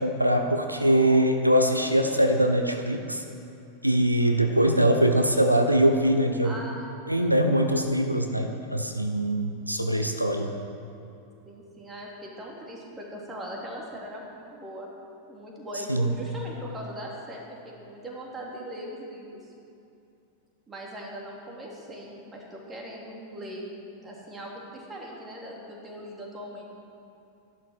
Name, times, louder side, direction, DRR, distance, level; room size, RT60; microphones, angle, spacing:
voice 1, 0.0-3.2 3.8-6.6 7.1-10.5 15.9-16.2, right 1 dB, 90° right, 5 dB, 0.8 m, -22 dB
voice 2, 6.4-6.9 11.5-14.9 15.3-19.4 20.7-23.7 24.0-26.6, equal, 15° right, -2 dB, 3.0 m, -40 dB
13.0 x 11.0 x 6.4 m, 2.6 s
figure-of-eight pair, 90°, 0 cm